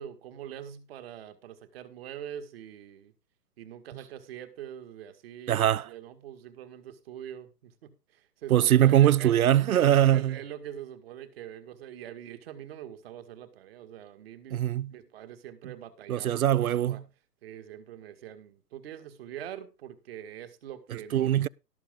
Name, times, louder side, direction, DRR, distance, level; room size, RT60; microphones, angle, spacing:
voice 1, 0.0-3.1 3.6-9.4 9.7-14.6 14.9-17.0 17.4-21.3, right 10 dB, 35° right, 1.9 m, -44 dB
voice 2, 5.5-5.9 8.5-10.4 14.5-14.9 16.1-17.0 21.1-21.5, right 11 dB, 60° right, 0.5 m, -22 dB
18.0 x 6.9 x 3.7 m
figure-of-eight pair, 140°, 48 cm